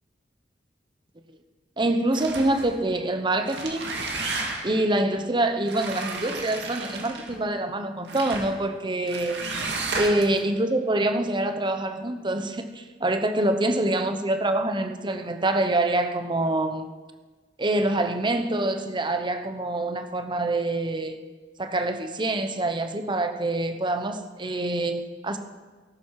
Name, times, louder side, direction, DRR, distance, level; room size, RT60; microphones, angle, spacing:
voice 1, 1.8-3.9 4.6-9.4 9.9-16.9 17.6-21.2 21.6-25.4, right 2 dB, 25° right, 7 dB, 1.0 m, -25 dB
sound 1, 2.1-2.7 3.3-4.8 5.6-7.4 8.1-8.5 9.1-10.4, right 3 dB, 75° right, 2.3 m, -32 dB
19.0 x 11.5 x 4.8 m, 1.4 s
head